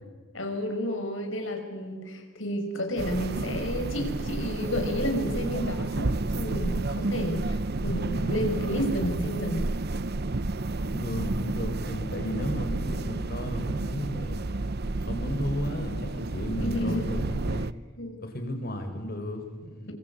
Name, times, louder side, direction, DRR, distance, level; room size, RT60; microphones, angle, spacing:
voice 1, 0.3-9.7 16.6-17.1 18.0-18.2, equal, 65° left, 5 dB, 5.3 m, -31 dB
sound 1, 3.0-17.7, right 2 dB, 50° right, 0.8 m, -30 dB
voice 2, 10.9-14.4 15.0-17.7 18.2-19.9, equal, 50° left, 6 dB, 5.3 m, -34 dB
26.5 x 26.0 x 8.5 m, 1.4 s
head